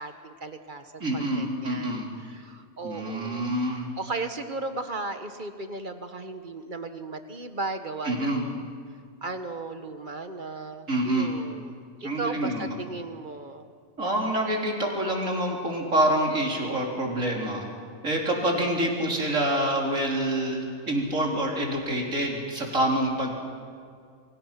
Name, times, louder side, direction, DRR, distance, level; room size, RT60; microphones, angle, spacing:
voice 1, 0.0-8.6 9.2-13.7, right 3 dB, 40° right, 8 dB, 1.5 m, -36 dB
voice 2, 1.0-2.1 2.8-3.9 8.0-8.4 10.9-11.3 12.0-12.7 14.0-17.6 18.0-23.3, right 1 dB, 75° right, -1 dB, 4.3 m, -26 dB
29.5 x 24.5 x 5.9 m, 2.1 s
omnidirectional pair, 1.3 m